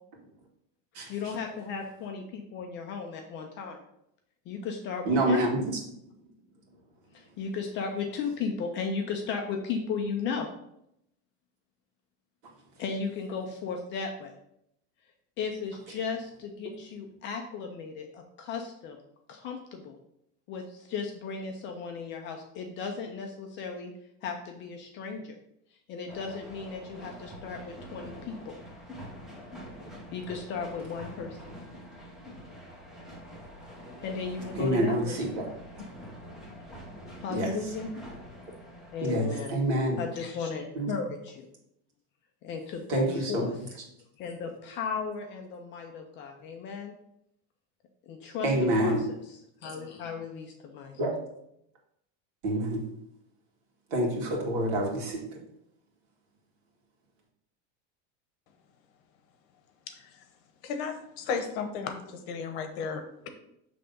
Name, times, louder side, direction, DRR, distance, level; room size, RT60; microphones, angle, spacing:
voice 1, 1.1-3.8 4.5-5.4 7.1-10.5 12.8-14.3 15.4-19.0 19.3-20.0 20.5-23.9 24.2-25.4 25.9-28.5 30.1-31.4 34.0-35.4 37.2-37.9 38.9-39.6 40.0-41.5 42.4-43.5 44.2-46.9 48.1-48.5 48.8-49.0 49.6-51.0, left 5 dB, 30° left, 3 dB, 0.5 m, -35 dB
voice 2, 5.1-5.6 34.6-35.5 37.3-37.5 39.0-40.0 40.8-41.0 42.9-43.5 48.4-49.0 51.0-51.2 52.4-52.8 53.9-55.3, right 1 dB, 55° right, -1 dB, 1.9 m, -27 dB
sound 1, 26.1-39.5, equal, ahead, 0.8 m, -46 dB
voice 3, 59.9-60.2 60.6-63.3, left 5 dB, 60° left, 7 dB, 1.0 m, -35 dB
6.4 x 3.4 x 5.3 m, 0.77 s
cardioid pair, 170°, 36 cm